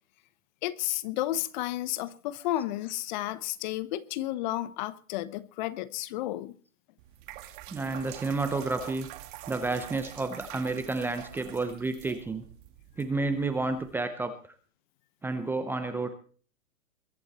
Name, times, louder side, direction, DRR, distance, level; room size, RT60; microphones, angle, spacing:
voice 1, 0.6-6.5, left 15 dB, 35° left, 1.0 m, -32 dB
sound 1, 7.0-13.9, right 13 dB, 35° right, 1.9 m, -46 dB
voice 2, 7.7-9.1 9.5-12.4 13.0-14.3 15.2-16.1, right 3 dB, 5° right, 0.7 m, -30 dB
22.0 x 11.0 x 4.3 m
hypercardioid pair, 135°, 43 cm